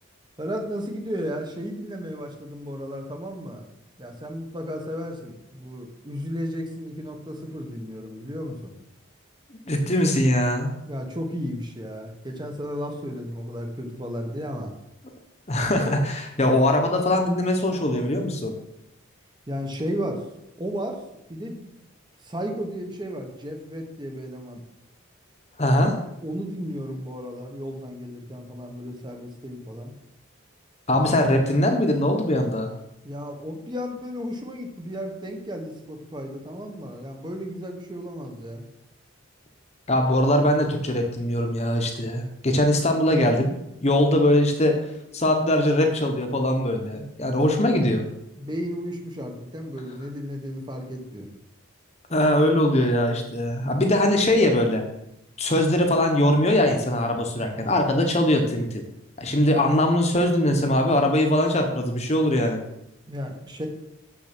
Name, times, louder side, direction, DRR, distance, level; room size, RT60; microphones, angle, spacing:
voice 1, 0.4-3.6 4.0-8.7 10.9-14.7 19.5-20.2 20.6-21.0 21.3-21.7 22.2-24.6 25.7-25.9 26.2-29.9 33.0-38.6 48.3-51.3 63.1-63.7, equal, 20° right, 4 dB, 1.1 m, -34 dB
voice 2, 9.5-10.7 15.5-18.5 25.6-25.9 30.9-32.7 39.9-43.5 43.8-44.7 45.1-48.0 52.1-54.8 55.4-58.8 59.2-62.6, left 1 dB, 30° left, 4 dB, 1.0 m, -21 dB
6.9 x 6.2 x 6.0 m, 0.84 s
head